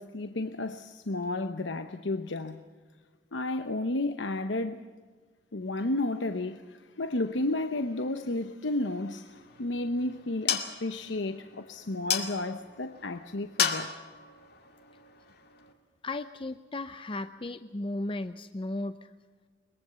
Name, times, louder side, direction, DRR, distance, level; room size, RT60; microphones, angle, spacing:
voice 1, 0.0-2.6 3.3-4.8 5.5-13.9, left 2 dB, 85° left, 0.9 m, -32 dB
sound 1, 9.3-15.7, left 7 dB, 60° left, 2.3 m, -35 dB
voice 2, 16.0-19.1, left 2 dB, 30° left, 0.6 m, -35 dB
22.5 x 22.0 x 6.9 m
head